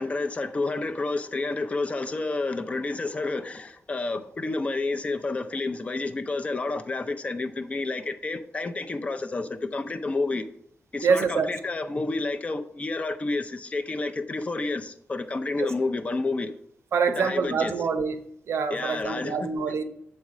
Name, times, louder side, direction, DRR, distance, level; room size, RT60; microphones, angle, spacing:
voice 1, 0.0-10.5 10.9-16.5 17.2-17.7 18.7-19.5, left 3 dB, 30° left, 0.5 m, -30 dB
voice 2, 11.0-11.5 15.6-15.7 16.9-18.2 18.5-19.8, right 5 dB, 80° right, 0.7 m, -25 dB
7.1 x 4.3 x 4.9 m
wide cardioid pair, 165°, 5 cm